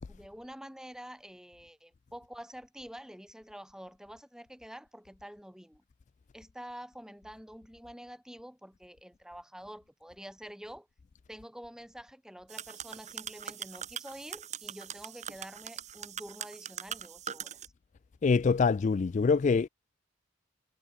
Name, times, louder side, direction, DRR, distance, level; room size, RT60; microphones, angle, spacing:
voice 1, 0.1-5.8 6.3-10.9 11.3-17.7, equal, 5° right, 3.1 m, -48 dB
sound 1, 12.5-17.7, right 9 dB, 35° right, 1.6 m, -42 dB
voice 2, 18.2-19.7, left 5 dB, 35° left, 0.3 m, -25 dB
head